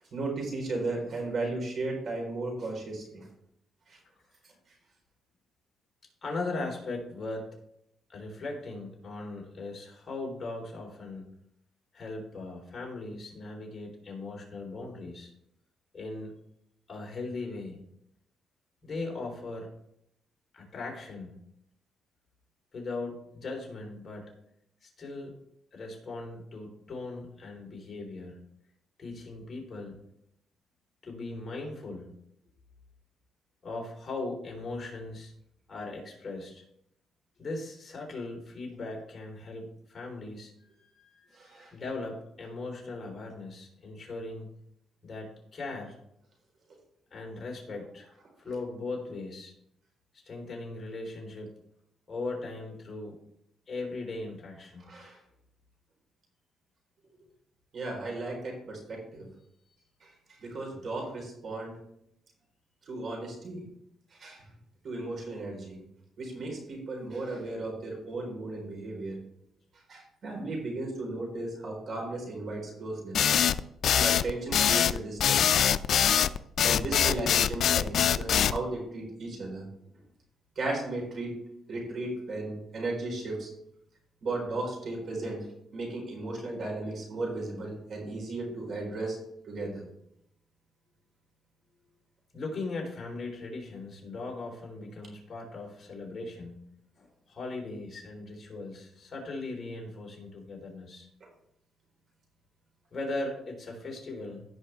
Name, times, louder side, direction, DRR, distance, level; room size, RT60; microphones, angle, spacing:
voice 1, 0.1-3.2 3.9-4.0 41.3-41.7 54.8-55.2 57.7-59.3 60.0-61.7 62.9-63.6 64.2-64.4 64.8-65.8 66.2-69.2 69.9-73.2 74.0-75.5 76.6-79.7 80.6-81.4 81.7-83.5 84.2-85.5 85.7-89.2 89.5-89.8, right 2 dB, 50° right, 0 dB, 4.2 m, -35 dB
voice 2, 6.2-7.5 8.1-11.3 11.9-15.3 15.9-16.4 16.9-17.8 18.8-19.7 20.5-21.4 22.7-24.4 24.8-25.3 25.7-28.4 29.0-30.0 31.0-32.1 33.6-35.3 35.7-36.6 37.4-44.5 45.0-46.0 47.1-48.1 48.4-49.5 50.2-51.6 52.1-53.2 53.7-54.9 79.9-80.1 92.3-96.6 97.0-101.1 102.9-104.5, left 2 dB, 35° left, -1 dB, 3.8 m, -39 dB
sound 1, 73.1-78.6, left 9 dB, 65° left, 0.4 m, -23 dB
16.5 x 5.5 x 3.4 m, 0.76 s
cardioid pair, 110°, 0 cm